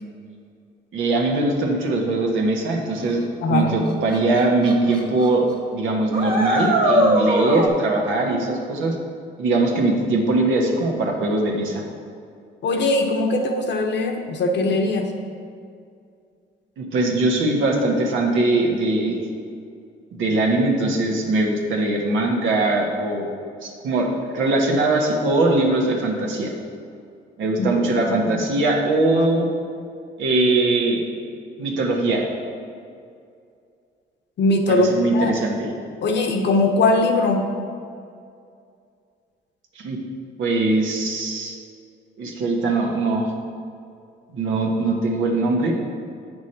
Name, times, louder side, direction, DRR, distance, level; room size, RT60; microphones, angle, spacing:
voice 1, 0.9-3.2 3.5-5.4 5.7-8.9 9.4-11.8 16.8-19.2 20.1-23.3 23.6-26.5 27.4-29.5 30.2-31.0 31.6-32.3 34.7-35.7 39.7-40.0 40.4-41.6 42.2-43.3 44.3-45.7, right 2 dB, 75° right, 0 dB, 1.4 m, -21 dB
voice 2, 3.4-3.7 12.6-15.1 27.6-27.7 28.0-28.4 29.1-29.3 34.4-35.3 36.0-37.5, left 2 dB, 65° left, 4 dB, 1.0 m, -20 dB
sound 1, 4.1-4.2 4.7-5.0 5.2-5.3 6.1-7.7, right 1 dB, 50° right, 1.4 m, -19 dB
8.1 x 6.2 x 4.3 m, 2.3 s
cardioid pair, 90°, 20 cm